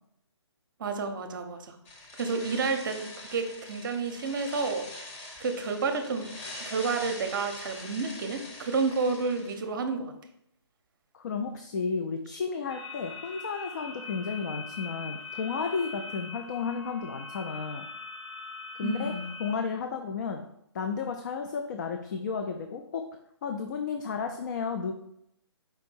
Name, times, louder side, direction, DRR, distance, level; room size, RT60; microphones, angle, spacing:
voice 1, 0.8-1.8 2.1-4.8 5.4-6.3 6.7-10.1 18.8-19.3, right 4 dB, 45° right, 6 dB, 0.7 m, -30 dB
sound 1, 1.8-9.6, left 2 dB, 20° left, 0.8 m, -44 dB
voice 2, 11.1-17.9 18.8-19.1 19.4-20.5 20.7-23.1 23.4-24.9, left 5 dB, 40° left, 5 dB, 0.4 m, -33 dB
sound 2, 12.7-19.5, left 4 dB, 65° left, 0.9 m, -42 dB
4.5 x 2.6 x 4.5 m, 0.76 s
figure-of-eight pair, 145°, 15 cm